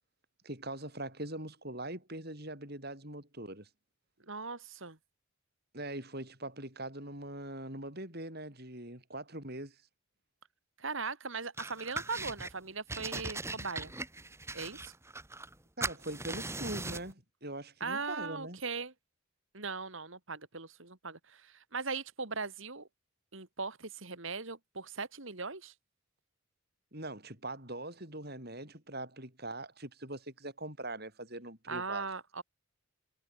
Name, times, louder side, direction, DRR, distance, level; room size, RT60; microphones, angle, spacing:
voice 1, 0.4-3.7 5.7-9.8 15.8-18.6 26.9-32.1, right 1 dB, 45° right, 7.9 m, -42 dB
voice 2, 4.3-5.0 10.8-13.9 14.5-14.9 17.8-18.9 19.5-22.9 23.3-25.7 31.7-32.4, right 4 dB, 65° right, 2.6 m, -39 dB
sound 1, 11.6-12.5 12.9-15.6 15.8-17.1, right 2 dB, 10° right, 2.8 m, -39 dB
head